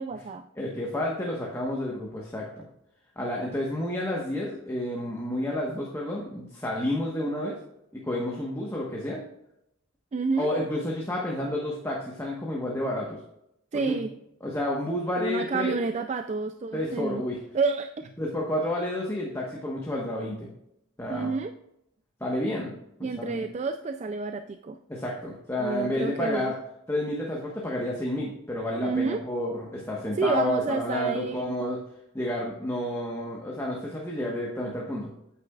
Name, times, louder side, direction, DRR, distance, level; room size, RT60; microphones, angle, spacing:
voice 1, 0.0-0.4 10.1-10.5 13.7-14.1 15.2-17.2 17.5-18.1 21.1-21.5 23.0-24.8 25.6-26.5 28.8-29.2 30.1-31.6, right 4 dB, 30° right, 8 dB, 0.3 m, -29 dB
voice 2, 0.6-2.6 3.2-7.6 7.9-9.2 10.4-13.2 13.7-14.0 14.4-15.8 16.7-17.4 18.2-20.5 21.0-21.3 22.2-22.7 23.1-23.4 24.9-26.5 26.9-31.8 32.1-35.1, left 1 dB, 10° left, -3 dB, 1.2 m, -30 dB
9.2 x 8.5 x 2.4 m, 0.80 s
head